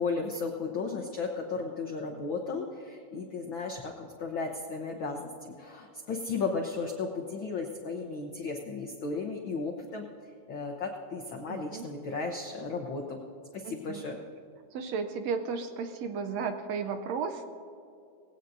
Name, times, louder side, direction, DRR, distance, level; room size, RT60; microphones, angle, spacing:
voice 1, 0.0-10.0 10.5-13.2 13.5-14.2, left 4 dB, 90° left, 2 dB, 1.0 m, -35 dB
voice 2, 11.5-11.9 13.6-14.0 14.7-17.4, right 5 dB, 75° right, 6 dB, 1.7 m, -34 dB
19.0 x 16.5 x 2.7 m, 2.5 s
omnidirectional pair, 3.6 m